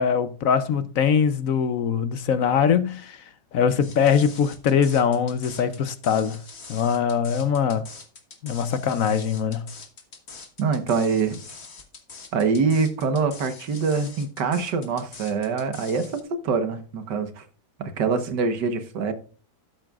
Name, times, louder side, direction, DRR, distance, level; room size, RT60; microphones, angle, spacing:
voice 1, 0.0-3.2 3.5-6.4 6.7-7.8 8.4-9.7, left 7 dB, 65° left, 1.0 m, -22 dB
sound 1, 3.8-16.2, left 4 dB, 40° left, 1.6 m, -44 dB
voice 2, 10.6-11.4 12.3-17.4 17.8-19.1, right 5 dB, 90° right, 1.8 m, -24 dB
12.0 x 8.8 x 2.4 m
omnidirectional pair, 1.8 m